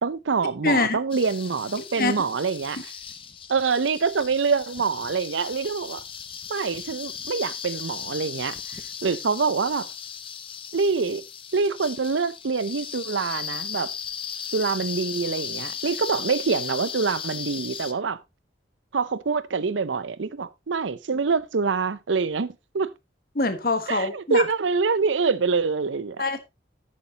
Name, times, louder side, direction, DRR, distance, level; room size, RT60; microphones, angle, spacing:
voice 1, 0.0-2.9 3.5-6.0 6.5-9.9 10.7-11.2 11.5-13.9 14.5-18.2 18.9-22.9 23.9-26.2, right 4 dB, 90° right, 0.6 m, -25 dB
voice 2, 0.6-1.0 2.0-2.1 23.3-24.4 26.2-26.4, left 3 dB, 50° left, 1.3 m, -24 dB
sound 1, 1.1-17.9, left 7 dB, 30° left, 0.7 m, -36 dB
11.0 x 8.7 x 2.9 m
head